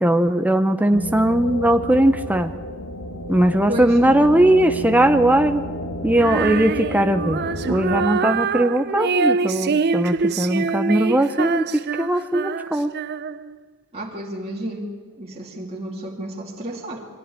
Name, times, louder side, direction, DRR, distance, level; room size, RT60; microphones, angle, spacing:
voice 1, 0.0-2.5 3.3-5.6 6.0-12.9, right 1 dB, 5° right, 7 dB, 0.7 m, -19 dB
sound 1, 0.9-8.1, equal, 85° left, 2.0 m, -31 dB
voice 2, 3.7-4.0 13.9-14.9 15.2-17.1, right 1 dB, 30° right, -3 dB, 2.5 m, -31 dB
Female singing, 6.2-13.6, right 5 dB, 50° right, 0.6 m, -25 dB
23.0 x 15.0 x 9.9 m, 1.5 s
head